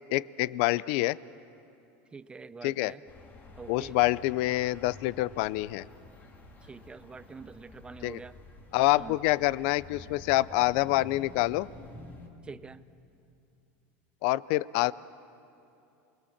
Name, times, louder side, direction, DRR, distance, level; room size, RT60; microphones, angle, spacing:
voice 1, 0.1-1.2 2.6-2.9 3.7-5.8 8.0-8.2 8.7-11.7 14.2-14.9, left 19 dB, 65° left, 20 dB, 0.5 m, -26 dB
voice 2, 2.1-3.0 3.6-4.0 6.6-8.4 9.0-9.2 12.4-12.8, right 4 dB, 15° right, 15 dB, 0.6 m, -45 dB
sound 1, 3.1-12.3, left 2 dB, 25° left, 2.6 m, -50 dB
28.0 x 20.5 x 7.2 m, 2.7 s
supercardioid pair, 130°, 7 cm